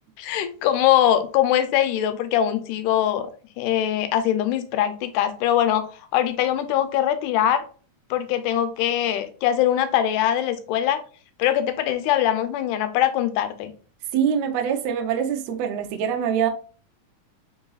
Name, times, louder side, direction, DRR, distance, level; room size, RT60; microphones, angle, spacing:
voice 1, 0.2-3.3 3.6-5.9 6.1-7.6 8.1-11.0 11.4-13.7, left 11 dB, 85° left, 2.1 m, -22 dB
voice 2, 14.1-16.5, right 8 dB, 80° right, 1.5 m, -24 dB
4.7 x 3.8 x 2.3 m
omnidirectional pair, 3.6 m